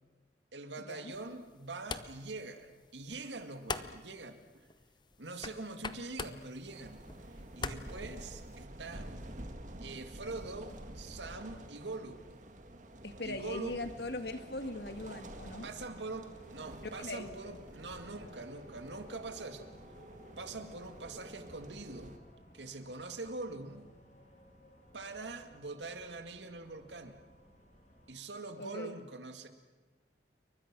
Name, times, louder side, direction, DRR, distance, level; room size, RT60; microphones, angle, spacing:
voice 1, 0.5-4.7 5.2-7.0 7.3-9.1 9.8-12.3 13.2-13.7 15.6-19.7 20.4-22.2 22.5-23.9 24.9-27.2 28.1-29.5, right 3 dB, 90° right, 7 dB, 2.1 m, -44 dB
sound 1, 1.1-8.6, left 4 dB, 25° left, 0.9 m, -45 dB
sound 2, 6.6-22.2, right 1 dB, 45° right, 2.0 m, -49 dB
voice 2, 13.0-15.7 17.0-17.3 28.6-28.9, left 2 dB, 70° left, 8 dB, 1.9 m, -40 dB
sound 3, 13.3-28.2, equal, 40° left, 3.3 m, -59 dB
29.0 x 23.5 x 6.1 m, 1.3 s
head